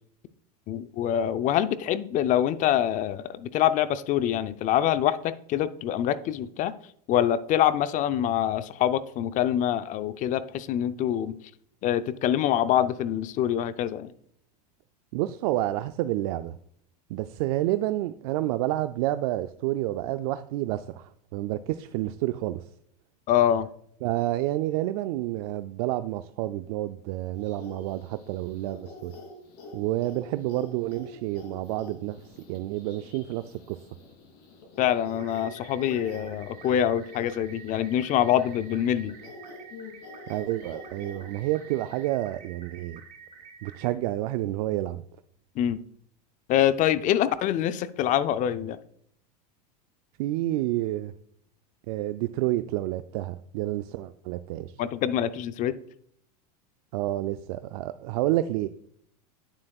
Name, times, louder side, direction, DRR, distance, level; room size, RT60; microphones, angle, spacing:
voice 1, 0.7-6.7 7.1-11.4 11.8-14.1 23.3-23.7 34.8-39.1 45.6-45.8 46.5-48.8 54.8-55.8, left 11 dB, 40° left, 14 dB, 0.5 m, -25 dB
voice 2, 15.1-16.5 17.1-22.7 24.0-29.1 29.7-32.2 32.5-33.8 40.3-43.0 43.6-45.0 50.2-51.1 51.9-54.7 56.9-58.7, right 15 dB, 65° right, 11 dB, 0.4 m, -29 dB
sound 1, 27.3-42.1, left 3 dB, 55° left, 3.0 m, -47 dB
sound 2, 35.2-43.9, right 6 dB, 35° right, 1.6 m, -49 dB
8.9 x 7.2 x 2.3 m, 0.68 s
supercardioid pair, 115°, 21 cm